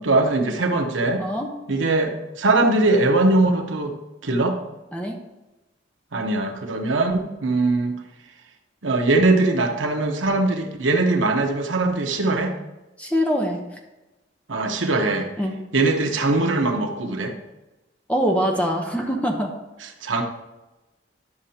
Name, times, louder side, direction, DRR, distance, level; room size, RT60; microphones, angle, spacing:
voice 1, 0.0-1.2 1.7-3.9 4.2-4.6 6.1-8.0 8.8-12.5 14.5-15.3 15.7-17.3 20.0-20.2, right 2 dB, 85° right, 3 dB, 1.0 m, -21 dB
voice 2, 13.0-13.6 15.4-15.5 18.1-19.5, equal, 5° left, 1 dB, 0.9 m, -23 dB
11.0 x 6.6 x 2.8 m, 1.0 s
head